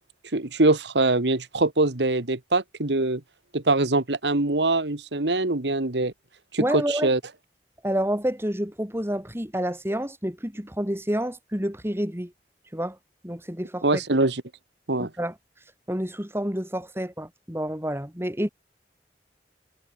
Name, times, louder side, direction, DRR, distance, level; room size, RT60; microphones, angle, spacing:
voice 1, 0.3-3.2 3.5-6.1 6.5-7.2 13.8-14.4 14.9-15.1, right 2 dB, 80° right, 1.8 m, -23 dB
voice 2, 6.6-7.1 7.8-12.3 12.7-13.0 13.2-13.8 15.0-15.3 15.9-18.5, equal, 15° right, 3.8 m, -28 dB
head